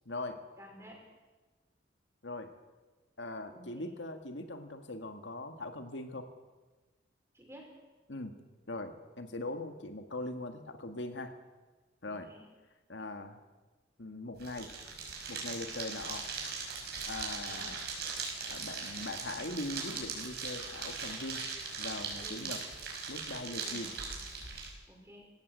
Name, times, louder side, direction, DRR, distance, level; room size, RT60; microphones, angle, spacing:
voice 1, 0.1-0.4 2.2-2.5 3.2-6.3 8.1-8.4 8.7-11.3 12.0-12.3 12.9-13.4 14.0-14.7 15.3-16.3 17.1-17.9 18.5-21.4 21.8-22.6 23.1-23.9, left 2 dB, 90° left, 6 dB, 2.0 m, -41 dB
voice 2, 0.6-1.0 3.5-3.9 7.3-7.7 12.1-12.4 17.5-17.7 22.2-22.5 23.6-23.9 24.9-25.3, equal, 15° right, 0 dB, 5.7 m, -52 dB
sound 1, 14.4-24.7, right 5 dB, 60° right, 5.6 m, -40 dB
20.0 x 17.0 x 8.2 m, 1.2 s
head